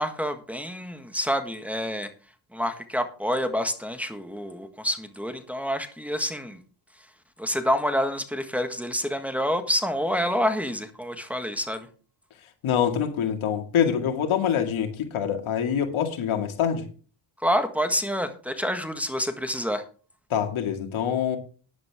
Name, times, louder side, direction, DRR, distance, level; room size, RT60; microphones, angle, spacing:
voice 1, 0.0-2.1 2.5-6.6 7.4-11.9 17.4-19.8, equal, 5° right, 6 dB, 1.6 m, -27 dB
voice 2, 12.6-16.8 20.3-21.4, left 8 dB, 90° left, 5 dB, 2.4 m, -25 dB
12.5 x 10.5 x 3.6 m, 0.38 s
cardioid pair, 110°, 47 cm